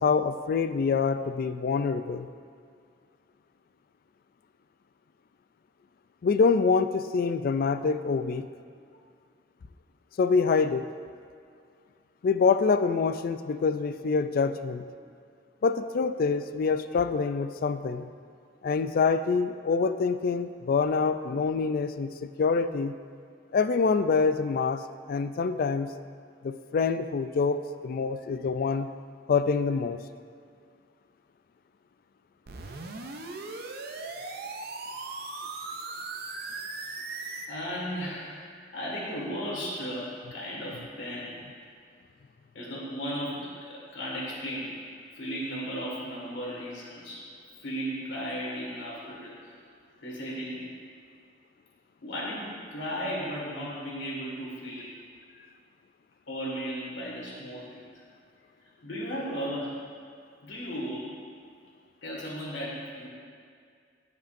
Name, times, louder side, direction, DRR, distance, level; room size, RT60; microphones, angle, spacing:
voice 1, 0.0-2.3 6.2-8.5 10.2-10.9 12.2-14.8 15.6-18.1 18.6-22.9 23.5-24.8 25.1-25.9 26.4-28.9 29.3-30.0, left 5 dB, 50° left, 11 dB, 0.3 m, -26 dB
sound 1, 32.5-37.5, right 3 dB, 60° right, 0.6 m, -38 dB
voice 2, 37.5-38.4 38.7-41.4 42.5-44.8 45.1-47.3 47.6-49.5 50.0-50.7 52.0-54.9 56.3-57.9 58.8-59.9 60.4-61.1 62.0-63.1, equal, 80° left, -5 dB, 1.9 m, -35 dB
15.0 x 5.4 x 2.6 m, 2.2 s
head